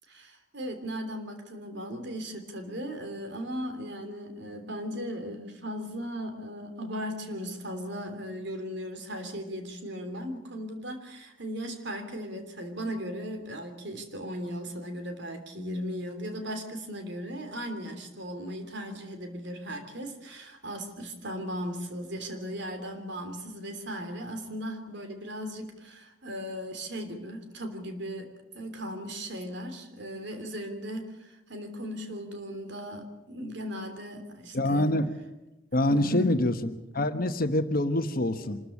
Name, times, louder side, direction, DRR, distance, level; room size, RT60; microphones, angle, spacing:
voice 1, 0.1-34.9 35.7-36.4, equal, 60° right, 7 dB, 3.2 m, -37 dB
voice 2, 34.5-35.1 35.7-38.6, left 1 dB, 50° left, 9 dB, 1.3 m, -26 dB
25.5 x 14.0 x 8.5 m, 0.99 s
head